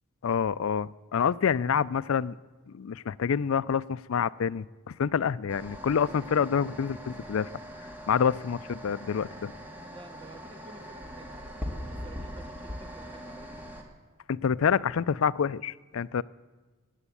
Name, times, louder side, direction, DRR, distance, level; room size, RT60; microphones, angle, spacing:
voice 1, 0.2-2.4 2.7-7.5 8.1-9.5 14.3-16.2, left 7 dB, 70° left, 17 dB, 0.4 m, -27 dB
sound 1, 5.5-13.8, equal, 10° right, 2.0 m, -41 dB
voice 2, 9.9-11.5 11.9-13.6, right 2 dB, 25° right, 8 dB, 1.0 m, -51 dB
18.0 x 9.1 x 8.4 m, 1.3 s
head